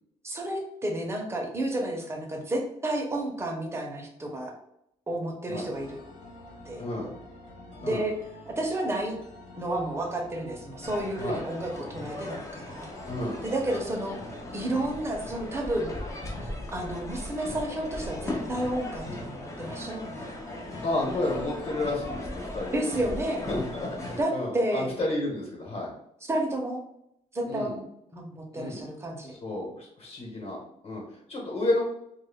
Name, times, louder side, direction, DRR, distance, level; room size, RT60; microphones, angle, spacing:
voice 1, 0.2-4.5 5.1-6.0 6.6-6.8 7.8-8.1 8.5-9.2 9.6-12.9 13.4-14.2 14.5-15.9 16.4-20.4 22.7-23.5 24.2-24.9 26.3-26.8 27.3-27.8 28.1-29.3, right 1 dB, 20° right, 1 dB, 0.6 m, -31 dB
sound 1, 5.7-21.7, left 1 dB, 75° left, 0.8 m, -48 dB
voice 2, 6.8-7.1 7.8-8.0 11.2-11.4 13.1-13.4 20.8-22.9 23.5-25.9 27.4-27.7 28.5-28.8 29.3-30.6 30.8-31.8, left 2 dB, 50° left, -2 dB, 1.1 m, -31 dB
sound 2, 10.8-24.2, left 1 dB, 25° left, 0.5 m, -38 dB
2.2 x 2.1 x 3.4 m, 0.78 s
cardioid pair, 125°, 13 cm